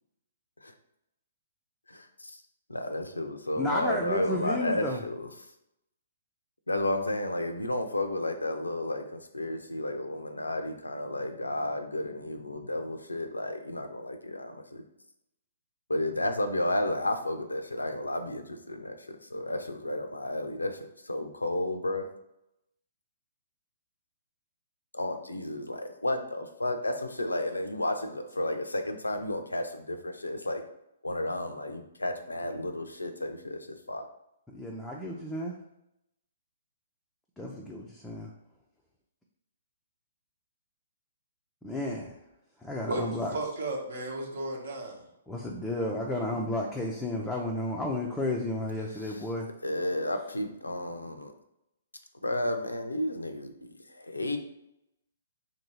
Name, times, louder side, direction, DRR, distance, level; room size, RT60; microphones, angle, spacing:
voice 1, 1.9-2.4 2.7-5.3 6.7-14.8 15.9-20.8 21.0-22.1 24.9-30.6 31.0-34.0 49.0-49.2 49.6-51.3 52.2-54.4, left 1 dB, 85° left, 6 dB, 0.5 m, -32 dB
voice 2, 3.6-5.0 34.5-35.5 37.4-38.3 41.6-42.1 42.6-43.3 45.3-49.5, left 1 dB, 5° left, -3 dB, 0.4 m, -32 dB
voice 3, 43.3-45.0, right 2 dB, 60° right, 0 dB, 0.9 m, -34 dB
2.9 x 2.7 x 4.2 m, 0.82 s
figure-of-eight pair, 125°, 0 cm